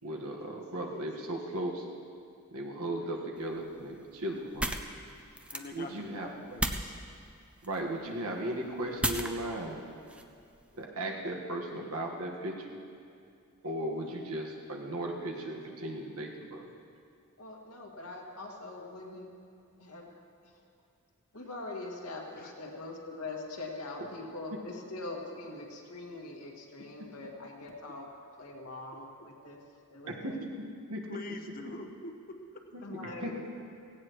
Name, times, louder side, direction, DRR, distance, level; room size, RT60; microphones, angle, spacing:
voice 1, 0.0-1.8 2.5-4.7 5.7-6.6 7.6-9.9 10.8-12.7 13.6-16.7 30.1-30.5 30.9-31.0 32.7-33.3, right 1 dB, 75° right, 0 dB, 1.7 m, -36 dB
sound 1, 3.4-10.9, right 1 dB, 5° right, 0.5 m, -38 dB
voice 2, 5.5-7.0 22.4-22.5 31.1-32.6, left 1 dB, 40° left, 4 dB, 1.1 m, -45 dB
voice 3, 17.4-19.3 19.8-20.1 21.3-28.0 28.4-29.6 29.9-30.4 32.8-33.4, left 2 dB, 85° left, -2 dB, 2.3 m, -42 dB
17.0 x 17.0 x 3.2 m, 2.4 s
head